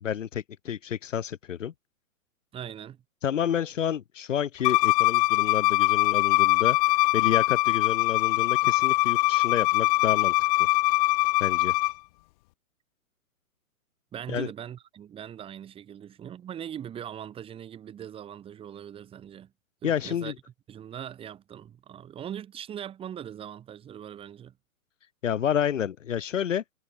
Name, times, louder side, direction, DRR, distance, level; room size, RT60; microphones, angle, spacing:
voice 1, 0.0-1.7 3.2-6.8 7.1-10.3 11.4-11.7 14.3-14.5 19.8-20.3 25.2-26.6, left 9 dB, 60° left, 6.3 m, -29 dB
voice 2, 2.5-3.0 14.1-19.5 19.8-20.3 20.7-24.5, right 9 dB, 10° right, 7.8 m, -40 dB
Bowed string instrument, 4.6-11.9, left 21 dB, 25° left, 2.0 m, -22 dB
hypercardioid pair, 160°, 43 cm